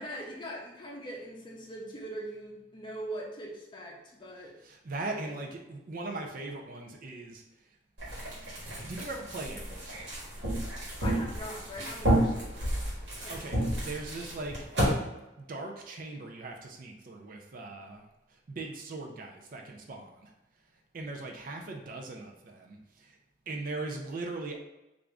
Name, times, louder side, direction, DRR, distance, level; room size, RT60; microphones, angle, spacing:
voice 1, 0.0-4.6 5.0-5.3 11.0-12.8 13.2-13.9, equal, 25° left, -2 dB, 0.7 m, -42 dB
voice 2, 4.6-7.7 8.8-10.1 13.0-15.0 15.4-20.3 20.9-23.2 23.5-24.6, right 2 dB, 45° right, 2 dB, 0.5 m, -40 dB
sound 1, 8.0-14.9, right 1 dB, 60° right, 1.4 m, -31 dB
3.4 x 2.5 x 3.4 m, 0.97 s
head